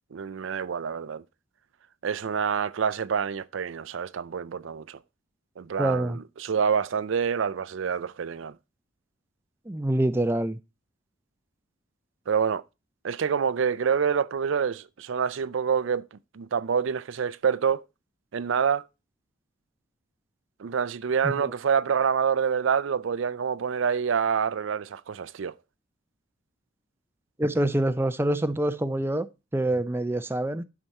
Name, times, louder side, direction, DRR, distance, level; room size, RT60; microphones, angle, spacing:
voice 1, 0.1-1.2 2.0-5.0 5.6-8.5 12.3-12.6 13.0-16.0 16.3-17.9 18.3-18.9 20.6-25.5, right 6 dB, 70° right, 0.4 m, -27 dB
voice 2, 5.8-6.2 9.7-10.6 21.2-21.4 27.4-29.3 29.5-30.6, right 1 dB, 10° right, 0.4 m, -25 dB
11.0 x 5.9 x 4.2 m
head